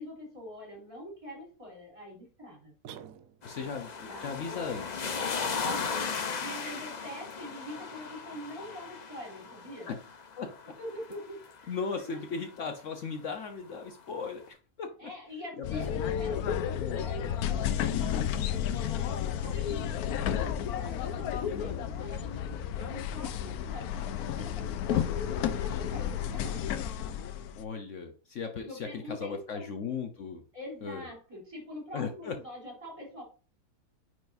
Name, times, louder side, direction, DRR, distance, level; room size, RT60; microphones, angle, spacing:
voice 1, 0.0-2.7 3.5-3.6 4.0-4.7 5.4-9.9 10.7-11.8 12.0-12.3 15.0-26.7 28.6-29.7 30.5-33.2, left 1 dB, 20° right, -3 dB, 3.2 m, -44 dB
sound 1, 2.8-3.8, right 9 dB, 70° right, 1.0 m, -48 dB
voice 2, 3.4-5.0 9.9-10.0 10.4-10.5 11.7-15.1 15.6-15.8 16.8-17.0 21.5-21.9 27.6-30.4 30.8-31.1 31.9-32.4, left 5 dB, 60° left, 5 dB, 1.1 m, -37 dB
sound 2, 3.4-12.5 13.8-13.9, left 5 dB, 45° left, 0.6 m, -37 dB
sound 3, 15.6-27.6, left 9 dB, 85° left, 1.1 m, -32 dB
9.7 x 4.7 x 2.6 m, 0.37 s
omnidirectional pair, 1.6 m